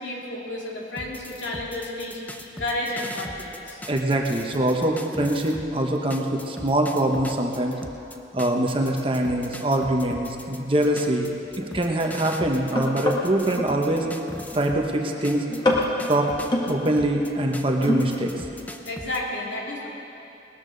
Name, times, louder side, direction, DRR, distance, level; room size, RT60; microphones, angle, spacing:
voice 1, 0.0-3.8 18.9-19.9, left 1 dB, 85° left, -3 dB, 2.4 m, -31 dB
sound 1, 1.0-5.7 6.1-14.9 15.2-19.2, left 1 dB, 10° left, 0.6 m, -40 dB
voice 2, 3.9-7.8 8.3-14.1 14.5-15.5 16.1-16.3 16.7-18.4, right 1 dB, 30° right, 1 dB, 1.1 m, -23 dB
sound 2, 10.3-10.4 10.8-13.8 14.2-14.6 15.0-15.2 15.5-16.7 17.6-18.3 18.6-18.7, left 1 dB, 25° left, 1.6 m, -27 dB
19.5 x 13.0 x 4.0 m, 2.8 s
head